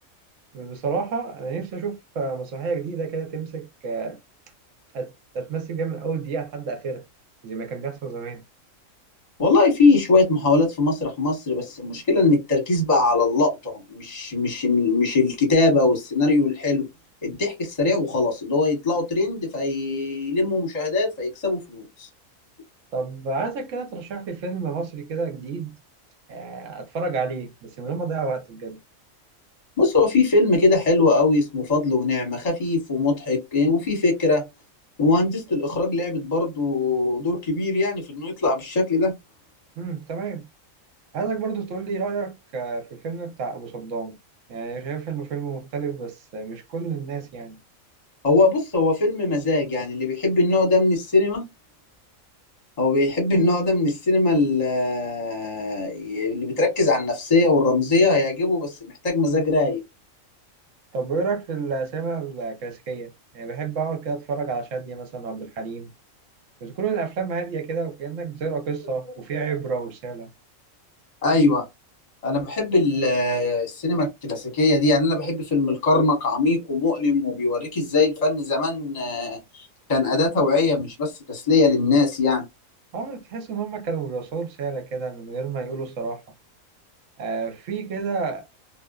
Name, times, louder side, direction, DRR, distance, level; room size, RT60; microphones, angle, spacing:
voice 1, 0.5-4.2 4.9-5.1 5.3-7.0 7.4-8.4 22.9-25.7 26.3-28.8 39.8-40.4 41.1-44.2 44.5-47.6 60.9-65.9 66.6-70.3 82.9-86.2 87.2-88.5, right 4 dB, 70° right, 1.0 m, -30 dB
voice 2, 9.4-16.9 17.2-22.1 29.8-34.4 35.0-39.1 48.2-51.4 52.8-59.8 71.2-71.6 72.2-82.5, left 3 dB, 35° left, 0.9 m, -21 dB
2.5 x 2.3 x 2.2 m
omnidirectional pair, 1.4 m